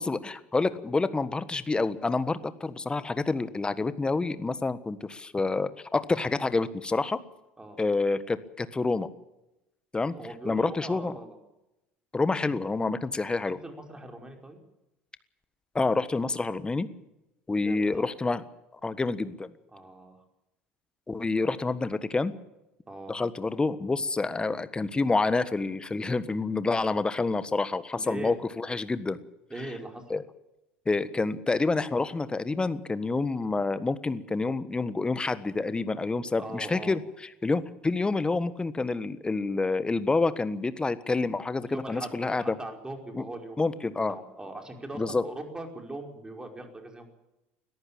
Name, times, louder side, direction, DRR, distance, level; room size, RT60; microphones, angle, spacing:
voice 1, 0.0-7.2 7.8-9.1 9.9-10.1 10.4-11.1 12.1-13.6 15.7-16.9 17.5-18.4 18.8-19.5 21.1-22.3 23.1-29.2 30.1-30.2 30.8-37.0 37.4-42.4 43.1-43.2 43.6-44.2 45.0-45.2, left 3 dB, 15° left, 14 dB, 1.4 m, -28 dB
voice 2, 10.1-11.4 13.5-14.6 17.6-18.0 19.7-20.2 22.9-23.2 27.9-28.4 29.5-30.0 36.4-37.0 41.7-47.1, right 2 dB, 15° right, 4 dB, 5.2 m, -40 dB
21.5 x 14.5 x 8.8 m, 0.93 s
hypercardioid pair, 70°, 5 cm